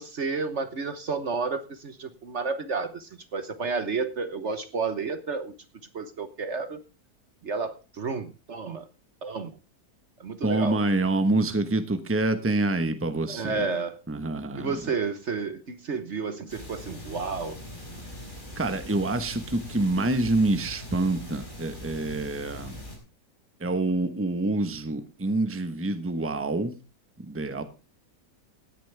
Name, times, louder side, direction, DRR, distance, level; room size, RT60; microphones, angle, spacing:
voice 1, 0.0-5.5 5.9-6.8 7.4-8.9 9.2-9.6 10.2-10.8 13.3-14.0 14.6-17.6, right 4 dB, 50° right, 1.4 m, -31 dB
voice 2, 10.4-13.6 14.1-14.7 18.6-22.8 23.6-26.7 27.2-27.6, right 2 dB, 10° right, 1.1 m, -26 dB
sound 1, 16.5-23.0, left 1 dB, 30° left, 4.6 m, -41 dB
17.0 x 10.5 x 3.4 m
omnidirectional pair, 1.6 m